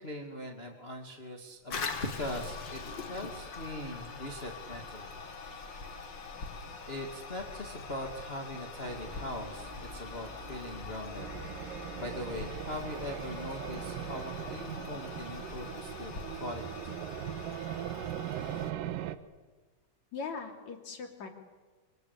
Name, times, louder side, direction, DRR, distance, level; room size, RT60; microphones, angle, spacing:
voice 1, 0.0-1.8 2.1-5.1 6.9-11.3 12.0-17.0, left 1 dB, 20° left, 2 dB, 2.1 m, -41 dB
Toilet flush, 1.7-18.7, left 4 dB, 40° left, 2.2 m, -43 dB
sound 1, 8.8-14.3, left 1 dB, 45° right, 2.7 m, -49 dB
sound 2, 11.2-19.2, right 12 dB, 85° right, 2.7 m, -40 dB
voice 2, 20.1-21.3, left 5 dB, 55° left, 3 dB, 4.0 m, -40 dB
26.5 x 25.0 x 8.4 m, 1.4 s
omnidirectional pair, 3.9 m